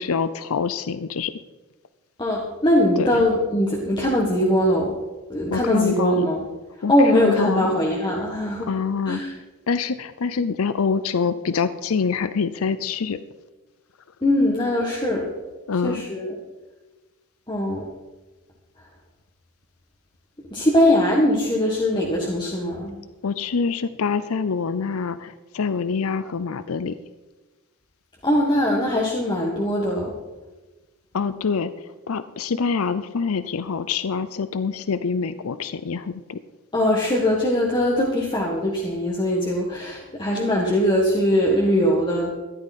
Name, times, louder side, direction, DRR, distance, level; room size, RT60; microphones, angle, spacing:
voice 1, 0.0-1.3 3.0-3.2 5.5-6.3 6.8-7.8 8.7-9.2 9.7-13.2 15.7-16.0 23.2-26.9 31.1-31.7 32.1-36.4, left 5 dB, 80° left, 14 dB, 0.5 m, -25 dB
voice 2, 2.2-5.0 5.3-6.5 6.9-8.7 9.1-9.4 14.2-15.3 15.8-16.4 17.5-17.9 20.5-23.0 28.2-30.1 36.7-42.4, left 1 dB, 20° left, -3 dB, 1.6 m, -21 dB
14.0 x 12.0 x 4.2 m, 1.2 s
head